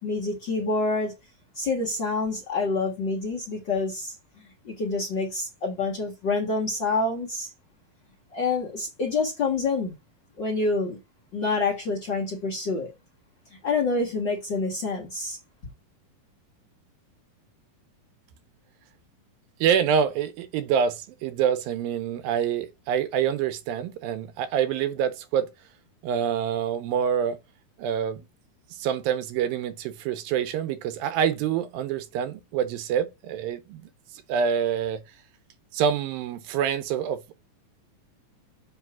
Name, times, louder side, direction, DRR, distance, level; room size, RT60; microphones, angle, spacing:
voice 1, 0.0-1.1 1.5-4.1 4.6-7.5 8.3-9.9 10.4-11.0 11.3-12.9 13.6-15.4, left 3 dB, 45° left, 1.5 m, -27 dB
voice 2, 19.6-25.5 26.0-27.4 27.8-28.3 28.7-33.9 34.3-35.0 35.7-37.3, right 8 dB, 90° right, 2.6 m, -26 dB
7.4 x 3.3 x 5.8 m
omnidirectional pair, 4.1 m